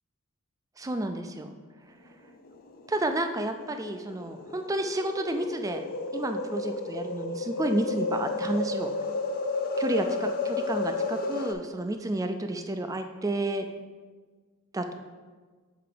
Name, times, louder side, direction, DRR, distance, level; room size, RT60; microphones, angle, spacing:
voice 1, 0.8-1.5 2.9-5.8 6.1-8.9 9.8-13.7 14.7-14.9, right 1 dB, 15° right, 7 dB, 0.3 m, -31 dB
sound 1, 2.5-11.5, left 3 dB, 45° left, 0.5 m, -32 dB
6.6 x 4.5 x 3.9 m, 1.4 s
head